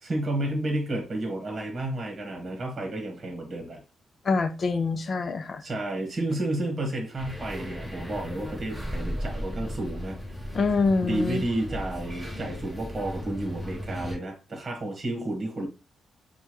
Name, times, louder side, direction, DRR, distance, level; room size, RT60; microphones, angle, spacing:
voice 1, 0.0-3.8 5.6-10.5 11.0-15.7, right 1 dB, 25° right, 1.4 m, -31 dB
voice 2, 4.3-5.6 10.5-11.4, left 4 dB, 35° left, 0.5 m, -25 dB
sound 1, 7.2-14.1, equal, ahead, 1.2 m, -36 dB
6.6 x 2.3 x 3.0 m
wide cardioid pair, 155°, 0 cm